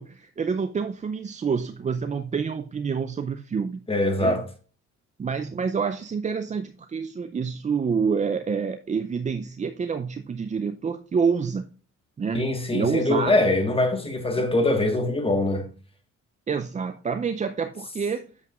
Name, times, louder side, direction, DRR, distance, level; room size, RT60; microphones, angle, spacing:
voice 1, 0.0-3.8 4.2-4.5 5.2-11.7 12.2-13.5 14.4-14.5 16.5-18.2, right 5 dB, 25° right, 0.4 m, -28 dB
voice 2, 3.9-4.4 12.3-15.7, left 2 dB, 20° left, 1.4 m, -23 dB
8.4 x 7.3 x 2.4 m
cardioid pair, 90°, 30 cm